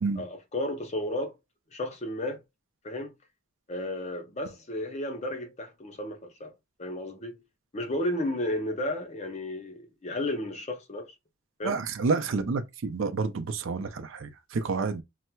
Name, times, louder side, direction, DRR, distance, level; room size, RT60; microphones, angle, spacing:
voice 1, 0.2-1.3 1.7-2.4 2.8-3.1 3.7-6.5 6.8-7.4 7.7-11.1 11.6-11.7, left 1 dB, 35° left, 0.6 m, -33 dB
voice 2, 11.6-15.0, right 4 dB, 65° right, 0.4 m, -29 dB
4.3 x 2.0 x 2.2 m
head